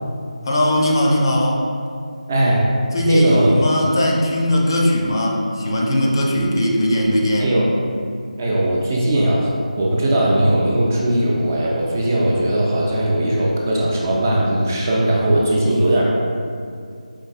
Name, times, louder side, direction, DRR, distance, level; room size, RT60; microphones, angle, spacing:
voice 1, 0.5-1.7 2.9-7.5, left 1 dB, 35° left, -1 dB, 0.5 m, -19 dB
voice 2, 2.3-2.7 3.1-3.6 7.4-7.7 8.4-9.5 9.8-16.1, right 1 dB, 20° right, -4 dB, 0.4 m, -18 dB
5.3 x 3.2 x 2.3 m, 2.3 s
figure-of-eight pair, 165°, 4 cm